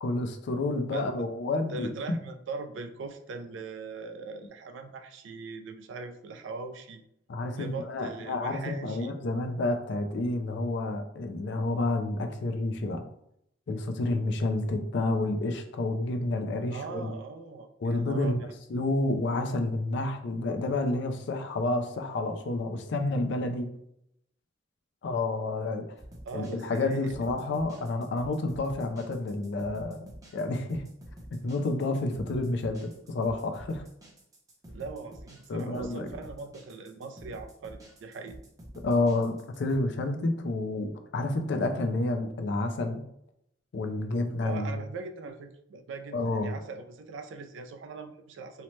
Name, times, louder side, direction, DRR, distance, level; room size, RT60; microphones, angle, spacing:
voice 1, 0.0-2.2 7.3-13.0 13.7-17.2 17.8-18.4 18.7-23.7 25.0-25.9 26.3-30.8 31.4-33.8 35.5-36.1 38.8-43.0 43.7-44.8 46.1-46.6, left 2 dB, 65° left, 6 dB, 0.4 m, -29 dB
voice 2, 1.7-7.0 7.5-9.1 16.7-18.4 26.3-27.2 34.7-38.4 44.4-48.6, right 4 dB, 80° right, 6 dB, 0.4 m, -40 dB
sound 1, 26.0-39.8, equal, 20° right, 0.6 m, -48 dB
2.8 x 2.1 x 3.0 m, 0.75 s
head